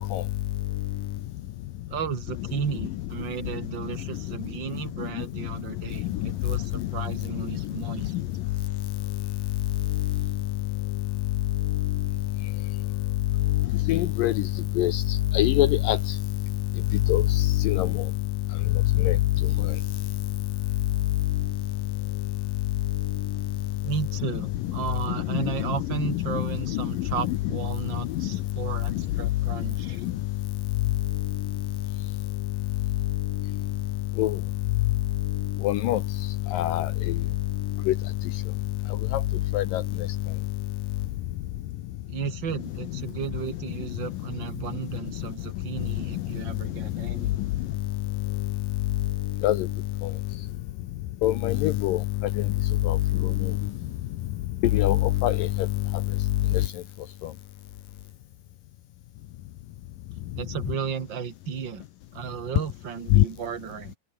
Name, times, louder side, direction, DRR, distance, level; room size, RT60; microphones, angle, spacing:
voice 1, 1.9-8.2 23.8-30.0 42.1-47.4 60.4-61.8 62.1-63.9, right 7 dB, 60° right, 1.1 m, -34 dB
voice 2, 13.9-14.3 14.8-15.0 15.3-16.0 17.1-17.9 19.0-19.2 25.3-25.4 26.8-26.9 27.3-27.4 34.2-34.3 35.6-36.0 36.5-36.9 37.9-38.0 39.5-39.8 49.4-49.7 51.2-52.0 52.9-53.0 54.7-55.5 63.1-63.2, left 14 dB, 90° left, 1.9 m, -22 dB
omnidirectional pair, 5.4 m